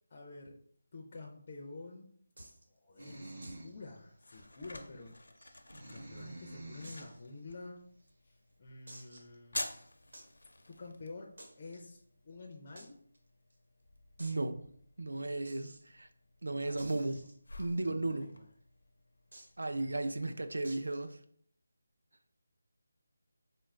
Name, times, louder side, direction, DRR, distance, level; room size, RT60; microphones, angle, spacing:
voice 1, 0.1-0.6 0.9-2.1 2.7-5.2 5.9-7.8 8.2-9.7 10.7-11.3 11.5-13.0 16.6-16.9 17.7-18.4 19.7-20.2, left 3 dB, 25° left, -1 dB, 0.4 m, -49 dB
sound 1, 2.4-2.6 3.4-3.7 4.0-4.1 4.4-4.5 5.2-6.0 6.8-7.2 7.8-7.9 8.9-9.4 10.1-10.3 11.4-11.8 12.8-12.9 13.1-13.2 13.5-13.6 14.2-14.4 15.4-15.8 16.8-17.9 19.3-19.6 20.6-21.0, right 1 dB, 75° right, 1.0 m, -52 dB
sound 2, 3.0-3.8 4.3-4.4 5.4-7.1, right 1 dB, 45° right, 0.8 m, -48 dB
sound 3, 3.5-21.1, left 2 dB, 85° left, 0.5 m, -51 dB
voice 2, 14.2-14.6 15.0-16.1 16.4-17.2 17.6-18.3 19.6-21.2, right 2 dB, 90° right, 8 dB, 0.4 m, -35 dB
4.0 x 2.4 x 3.2 m, 0.62 s
figure-of-eight pair, 180°, 0 cm